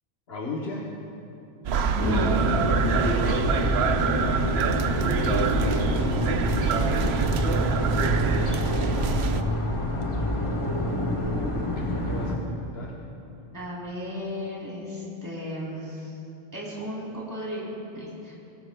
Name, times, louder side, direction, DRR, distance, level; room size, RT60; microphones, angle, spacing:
voice 1, 0.3-0.9 2.8-3.1 11.2-13.0, left 1 dB, 75° left, -3 dB, 1.3 m, -37 dB
sound 1, 1.6-9.4, right 6 dB, 85° right, 0.9 m, -25 dB
voice 2, 1.9-2.4 13.3-16.1 16.5-17.7 17.9-18.4, equal, 20° right, -6 dB, 2.8 m, -34 dB
sound 2, 2.0-12.4, left 1 dB, 30° left, 1.2 m, -27 dB
21.5 x 15.5 x 2.2 m, 2.8 s
omnidirectional pair, 1.0 m